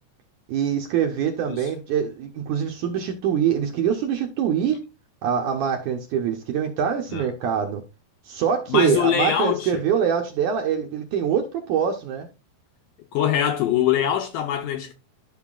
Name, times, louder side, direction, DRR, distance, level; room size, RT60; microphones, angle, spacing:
voice 1, 0.5-4.8 5.2-7.8 8.3-12.3, right 8 dB, 70° right, 1.9 m, -24 dB
voice 2, 8.7-9.8 13.1-14.9, left 10 dB, 75° left, 2.0 m, -23 dB
12.0 x 5.7 x 2.4 m
omnidirectional pair, 4.4 m